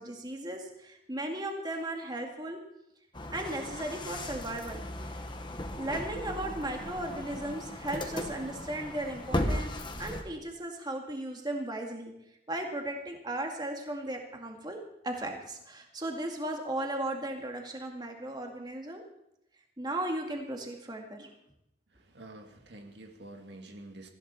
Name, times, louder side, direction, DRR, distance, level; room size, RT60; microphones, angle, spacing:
voice 1, 0.0-2.6 3.3-5.2 5.8-9.7 10.0-12.1 12.5-14.8 15.0-19.0 19.8-21.3, right 1 dB, 25° right, 2 dB, 2.2 m, -36 dB
sound 1, 3.1-10.2, left 1 dB, 25° left, 1.5 m, -36 dB
voice 2, 21.9-24.1, right 2 dB, 75° right, 3 dB, 1.9 m, -48 dB
19.0 x 15.0 x 4.3 m, 0.78 s
head